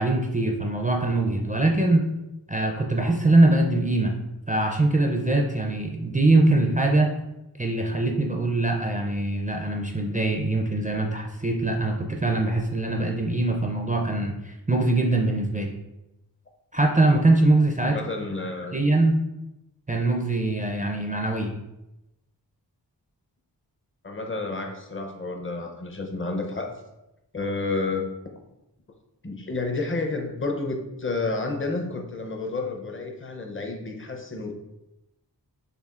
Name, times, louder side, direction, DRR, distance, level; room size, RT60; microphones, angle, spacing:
voice 1, 0.0-2.0 2.5-4.2 4.5-7.1 7.6-15.7 16.7-18.0 18.7-19.2 19.9-21.5, right 2 dB, 20° right, 1 dB, 0.4 m, -22 dB
voice 2, 17.8-18.8 24.0-26.7 27.3-28.0 29.2-34.5, left 3 dB, 30° left, 3 dB, 0.6 m, -30 dB
6.7 x 2.4 x 2.4 m, 0.93 s
wide cardioid pair, 55°, 42 cm